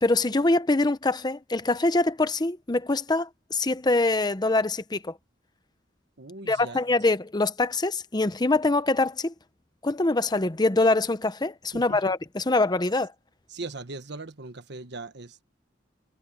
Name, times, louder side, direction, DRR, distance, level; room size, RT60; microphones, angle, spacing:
voice 1, 0.0-5.1 6.5-9.3 9.8-13.1, left 2 dB, 20° left, 0.7 m, -24 dB
voice 2, 6.2-6.8 11.7-12.0 13.5-15.4, right 3 dB, 65° right, 1.4 m, -39 dB
head